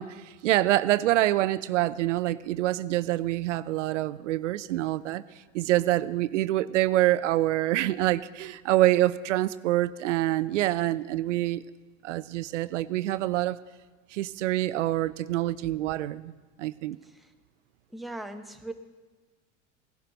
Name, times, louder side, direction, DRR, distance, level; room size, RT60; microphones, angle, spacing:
voice 1, 0.0-5.2 5.5-11.6 12.0-13.6 14.1-16.3 16.6-17.0, right 15 dB, 75° right, 16 dB, 0.5 m, -26 dB
voice 2, 17.9-18.7, right 2 dB, ahead, 5 dB, 0.9 m, -39 dB
17.0 x 11.5 x 3.9 m, 1.3 s
hypercardioid pair, 85°, 37 cm